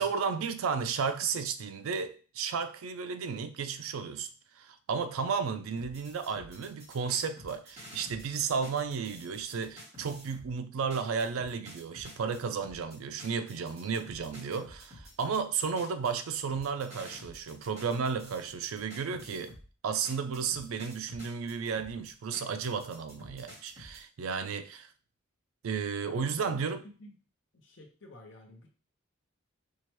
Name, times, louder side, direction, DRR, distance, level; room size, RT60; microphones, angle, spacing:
voice 1, 0.0-4.3 4.6-19.5 19.8-24.9 25.6-26.8, right 6 dB, 85° right, 0.4 m, -33 dB
sound 1, 5.8-10.5 10.9-19.7 20.0-24.0, equal, 30° right, 1.1 m, -51 dB
voice 2, 26.1-26.6 27.0-27.1 27.5-28.7, left 1 dB, 60° left, 0.7 m, -51 dB
4.5 x 2.1 x 3.0 m
head